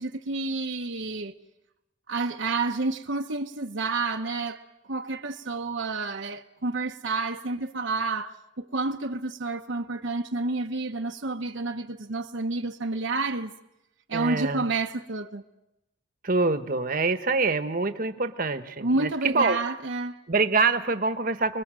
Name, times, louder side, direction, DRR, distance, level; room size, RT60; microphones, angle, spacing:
voice 1, 0.0-1.3 2.1-13.5 14.1-15.4 18.8-20.2, right 3 dB, 70° right, 1.0 m, -29 dB
voice 2, 14.1-14.6 16.2-19.6 20.3-21.6, right 3 dB, 45° right, 1.2 m, -25 dB
29.5 x 21.5 x 7.6 m
head